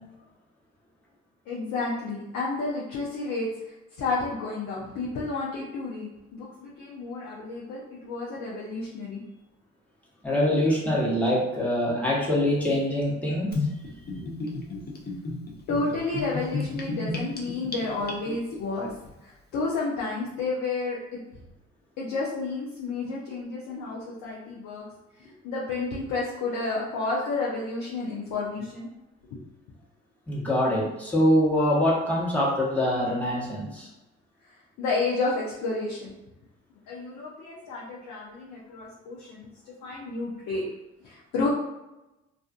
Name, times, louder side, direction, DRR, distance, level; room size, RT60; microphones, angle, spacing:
voice 1, 1.5-9.2 14.2-14.3 15.7-18.9 19.2-21.0 22.0-24.8 25.2-28.9 29.3-29.4 34.5-36.1 36.9-40.6 41.0-41.5, left 3 dB, 70° left, -5 dB, 0.7 m, -31 dB
voice 2, 10.2-13.5 30.3-33.9, left 1 dB, 5° left, -5 dB, 1.0 m, -24 dB
Gurgling / Bathtub (filling or washing), 13.5-18.6, left 3 dB, 30° left, 0.7 m, -32 dB
2.4 x 2.4 x 2.4 m, 0.97 s
supercardioid pair, 60°, 30 cm